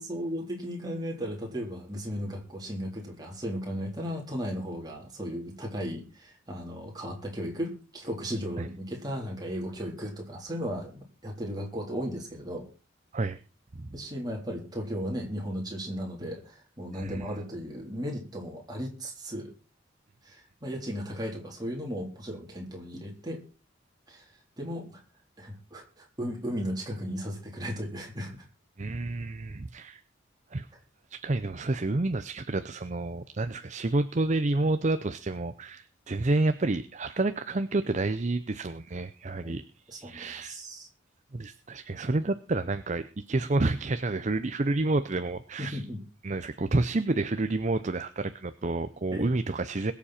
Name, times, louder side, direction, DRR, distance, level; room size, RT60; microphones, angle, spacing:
voice 1, 0.0-12.7 13.9-19.5 20.2-23.4 24.1-24.3 24.6-25.0 25.4-28.5 39.4-39.6 39.9-40.9 45.6-46.0 49.1-49.3, equal, 20° right, 0 dB, 3.8 m, -36 dB
voice 2, 28.8-30.0 30.5-30.7 31.1-40.6 41.3-45.8 46.2-49.9, right 2 dB, 40° right, 11 dB, 0.6 m, -29 dB
22.0 x 7.3 x 4.4 m, 0.34 s
head